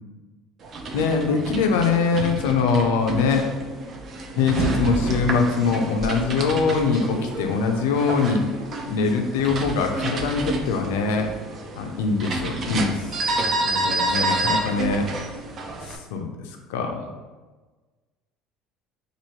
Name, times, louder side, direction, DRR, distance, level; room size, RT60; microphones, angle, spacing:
sound 1, 0.6-16.0, right 2 dB, 45° right, 0.5 m, -29 dB
voice 1, 0.9-3.4 4.4-8.4 8.9-11.3 11.8-13.0 13.6-15.1 15.9-17.1, left 4 dB, 90° left, 3 dB, 0.4 m, -23 dB
2.9 x 2.6 x 4.3 m, 1.3 s
supercardioid pair, 95°, 0 cm